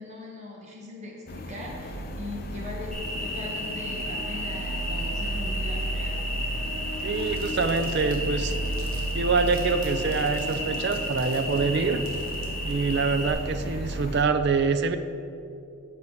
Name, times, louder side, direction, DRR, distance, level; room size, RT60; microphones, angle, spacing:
voice 1, 0.0-6.3, left 2 dB, 35° right, -2 dB, 1.5 m, -40 dB
sound 1, 1.3-14.2, right 1 dB, 45° left, 0.7 m, -34 dB
Cricket, 2.9-13.3, left 1 dB, 5° left, 1.5 m, -33 dB
voice 2, 7.0-8.6 9.1-12.0 12.6-15.0, right 4 dB, 55° right, 10 dB, 0.5 m, -25 dB
sound 2, 7.1-12.7, right 3 dB, 75° right, 1.6 m, -49 dB
8.3 x 5.0 x 6.9 m, 2.6 s
head